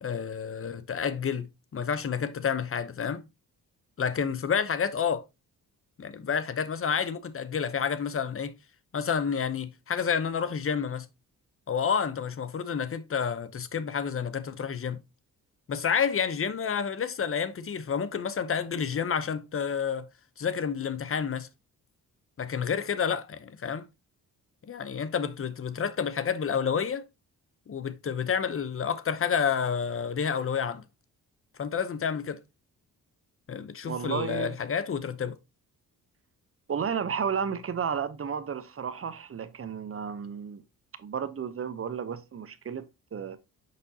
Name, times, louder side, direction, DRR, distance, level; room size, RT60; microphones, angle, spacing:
voice 1, 0.0-3.2 4.0-5.2 6.0-8.5 8.9-11.1 11.7-15.0 15.7-20.1 20.4-21.5 22.4-23.9 24.7-27.1 27.7-30.8 31.6-32.4 33.5-35.4, left 7 dB, 40° left, 0.8 m, -29 dB
voice 2, 33.9-34.5 36.7-40.6 41.0-42.9 43.1-43.4, right 7 dB, 40° right, 0.8 m, -32 dB
6.7 x 5.1 x 2.8 m
cardioid pair, 75°, 35 cm